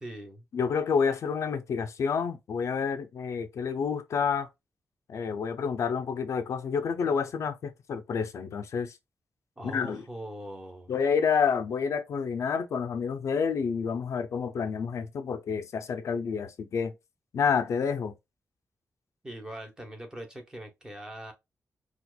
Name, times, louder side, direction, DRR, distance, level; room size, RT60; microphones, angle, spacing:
voice 1, 0.0-0.4 9.6-10.9 19.2-21.3, right 1 dB, 15° right, 0.9 m, -41 dB
voice 2, 0.5-4.5 5.1-9.0 9.6-10.0 10.9-16.9 17.3-18.1, left 6 dB, 65° left, 0.5 m, -29 dB
4.3 x 2.4 x 2.3 m
wide cardioid pair, 170°, 5 cm